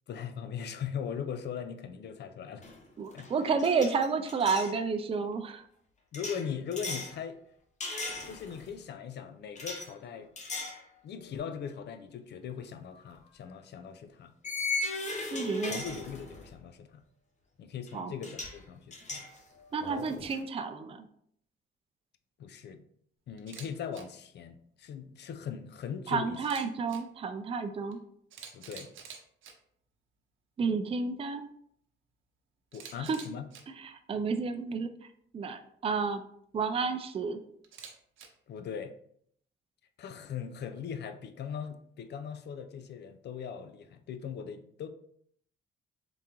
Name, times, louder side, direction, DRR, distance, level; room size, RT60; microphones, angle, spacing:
voice 1, 0.1-2.6 3.1-3.3 6.1-7.4 8.2-10.3 11.0-14.3 15.7-17.0 17.6-19.2 22.4-22.8 23.3-26.4 28.5-28.9 32.7-33.4 38.5-38.9 40.0-44.9, left 7 dB, 60° left, 8 dB, 0.5 m, -40 dB
sound 1, 2.6-2.9 3.1-4.7 6.1-7.1 7.8-8.7 9.6-9.9 10.4-10.8 11.3-11.4 13.0-13.1 14.4-16.5 17.9-18.0 18.2-18.6 18.9-20.4, left 3 dB, 35° left, 0.8 m, -37 dB
voice 2, 3.0-5.6 15.3-15.8 17.9-18.1 19.7-21.1 26.1-28.0 30.6-31.5 33.0-33.2 33.8-34.9 35.3-36.2 36.5-37.4, right 5 dB, 30° right, 7 dB, 0.4 m, -31 dB
Camera, 23.4-23.7 23.9-24.0 26.3-27.0 27.9-28.0 28.3-29.5 32.7-33.6 37.6-38.3, right 7 dB, 80° right, 0.8 m, -47 dB
3.8 x 3.5 x 2.9 m, 0.67 s
cardioid pair, 90°, 20 cm